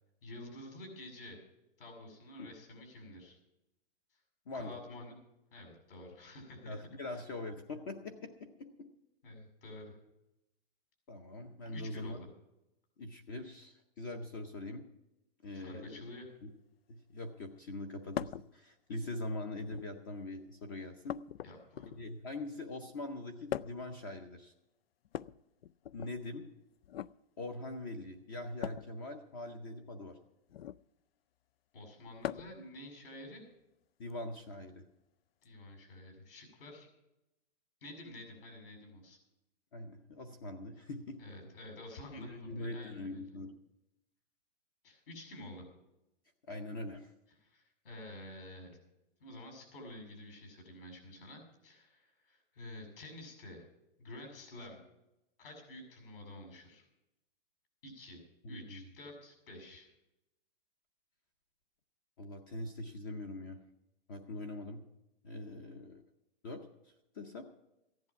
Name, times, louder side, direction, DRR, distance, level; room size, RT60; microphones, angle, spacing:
voice 1, 0.2-1.4 1.8-3.4 4.5-5.1 5.5-6.8 7.1-7.2 9.2-10.0 11.6-12.3 15.5-16.3 21.4-21.9 31.7-33.5 35.4-36.9 37.8-39.2 41.2-43.2 44.8-45.6 47.4-48.8 49.2-53.6 54.0-54.8 55.4-56.9 57.8-58.2 58.5-59.9, left 1 dB, 70° left, 3 dB, 6.6 m, -49 dB
voice 2, 4.5-4.8 6.6-8.7 11.1-12.2 13.0-14.8 15.4-16.0 16.4-16.5 16.9-21.2 21.9-24.5 25.9-26.5 27.4-30.2 34.0-34.8 39.7-41.2 42.2-43.6 46.5-47.1 58.4-58.9 62.2-63.6 64.1-64.8 65.2-66.0 66.4-66.6 67.1-67.4, left 2 dB, 20° left, 7 dB, 0.6 m, -42 dB
sound 1, 18.1-18.5 19.5-20.0 21.1-22.2 23.5-23.9 25.0-26.1 26.8-27.1 28.6-28.9 30.5-30.9 32.2-32.6 34.1-34.2 35.4-35.5, left 11 dB, 85° left, 0.5 m, -41 dB
15.0 x 10.5 x 5.8 m, 0.89 s
hypercardioid pair, 175°, 29 cm